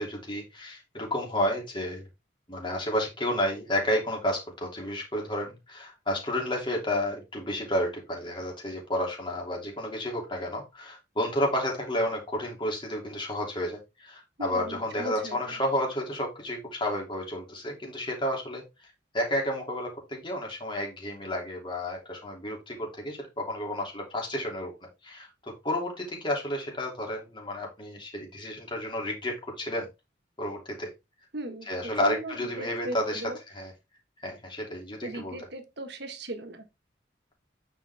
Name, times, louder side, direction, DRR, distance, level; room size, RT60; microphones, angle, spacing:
voice 1, 0.0-2.1 2.5-29.9 30.4-30.9 31.7-33.2 33.5-33.7 34.2-35.4, left 1 dB, 25° left, 2.9 m, -31 dB
voice 2, 14.4-15.6 31.3-33.4 35.0-36.7, right 1 dB, 60° right, 1.6 m, -38 dB
9.1 x 5.5 x 3.5 m
head